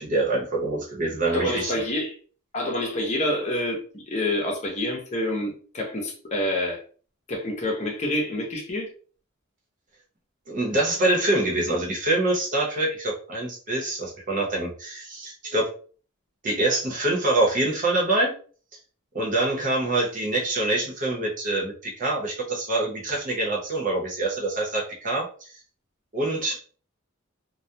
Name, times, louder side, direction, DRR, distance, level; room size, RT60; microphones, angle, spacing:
voice 1, 0.0-1.7 10.5-15.7 16.4-18.3 19.1-25.5 26.1-26.6, right 2 dB, 40° right, 0.8 m, -25 dB
voice 2, 1.2-2.2 2.5-6.8 7.3-8.9, left 1 dB, 35° left, 0.7 m, -27 dB
2.3 x 2.1 x 2.7 m
head